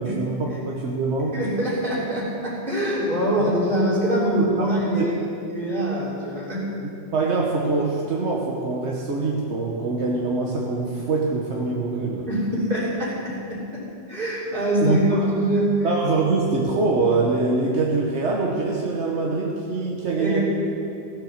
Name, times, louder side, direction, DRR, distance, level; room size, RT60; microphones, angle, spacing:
voice 1, 0.0-1.4 3.4-3.5 4.6-4.7 5.0-5.1 7.1-12.3 14.8-15.3 15.8-20.4, right 3 dB, 85° right, -1 dB, 1.4 m, -24 dB
voice 2, 1.3-5.2 5.5-6.7 12.3-15.9 20.1-20.4, right 1 dB, 50° right, -6 dB, 3.4 m, -24 dB
16.0 x 7.5 x 6.6 m, 2.6 s
omnidirectional pair, 1.1 m